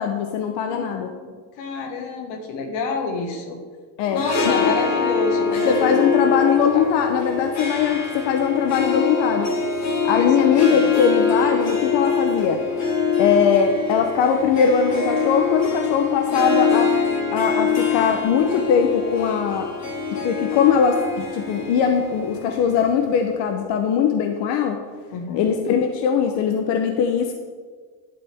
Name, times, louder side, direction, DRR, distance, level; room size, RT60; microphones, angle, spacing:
voice 1, 0.0-1.1 4.0-4.2 4.6-4.7 5.6-9.5 10.0-12.6 13.2-16.9 17.3-19.7 20.2-24.8 25.3-27.3, left 7 dB, 65° left, 4 dB, 1.0 m, -20 dB
voice 2, 0.7-3.6 4.1-6.3 6.7-6.9 10.1-10.8 25.1-25.4, left 3 dB, 85° left, 2 dB, 1.9 m, -28 dB
Harp, 4.0-23.4, left 5 dB, 35° left, 2.0 m, -24 dB
11.5 x 9.2 x 3.6 m, 1.5 s
cardioid pair, 135°, 47 cm